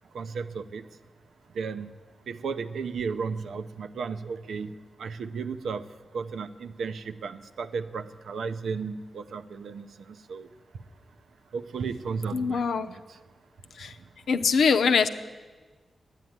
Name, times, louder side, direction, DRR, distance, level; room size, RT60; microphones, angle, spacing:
voice 1, 0.1-0.8 1.5-1.9 2.3-4.7 5.0-5.9 6.1-10.5 11.5-13.2, right 5 dB, 85° right, 10 dB, 0.7 m, -34 dB
voice 2, 12.3-12.9 13.8-13.9 14.3-15.1, left 5 dB, 85° left, 7 dB, 0.7 m, -23 dB
11.5 x 9.2 x 9.4 m, 1.4 s
cardioid pair, 60°, 0 cm